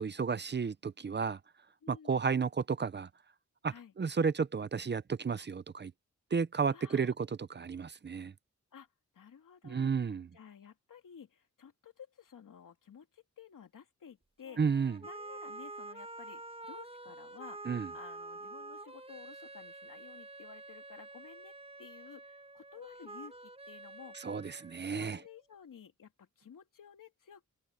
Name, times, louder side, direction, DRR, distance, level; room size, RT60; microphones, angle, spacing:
voice 1, 0.0-1.4 1.9-3.1 3.6-5.9 6.3-8.3 9.6-10.3 14.6-15.0 17.6-17.9 24.2-25.2, right 5 dB, 35° right, 0.6 m, -32 dB
voice 2, 1.8-2.2 3.7-3.9 6.7-7.1 8.7-8.9 9.1-9.9 10.3-14.6 15.0-21.5 21.8-24.3 24.9-27.5, left 8 dB, 85° left, 3.1 m, -54 dB
sound 1, 14.4-25.4, right 2 dB, 20° right, 6.7 m, -48 dB
wide cardioid pair, 145°, 31 cm